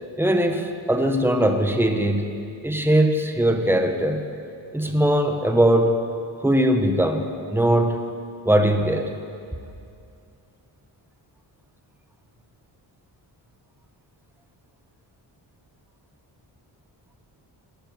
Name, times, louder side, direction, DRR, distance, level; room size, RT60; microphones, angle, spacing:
voice 1, 0.2-4.3 4.7-6.0 6.4-8.0 8.4-9.1, right 1 dB, 5° right, 5 dB, 1.5 m, -20 dB
19.5 x 8.2 x 7.8 m, 2.5 s
cardioid pair, 70°, 48 cm